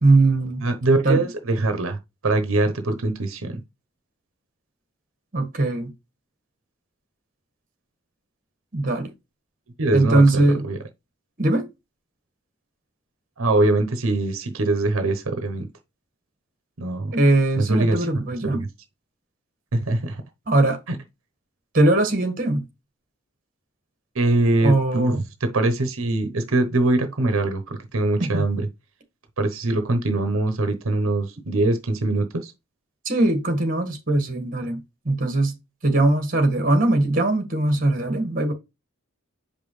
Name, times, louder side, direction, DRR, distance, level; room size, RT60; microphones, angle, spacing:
voice 1, 0.0-0.6 1.0-1.2 5.3-5.9 8.7-9.1 9.9-10.7 11.4-11.7 17.1-18.6 20.5-20.8 21.7-22.7 24.6-25.2 28.2-28.4 33.1-34.8 35.1-35.6 35.8-38.5, right 2 dB, 40° right, 1.7 m, -20 dB
voice 2, 0.6-3.6 9.8-10.8 13.4-15.7 16.8-17.1 17.6-18.7 19.7-20.2 20.9-21.0 24.1-25.1 25.4-28.7 29.4-32.5, right 2 dB, 85° right, 0.9 m, -23 dB
6.7 x 5.3 x 3.2 m
head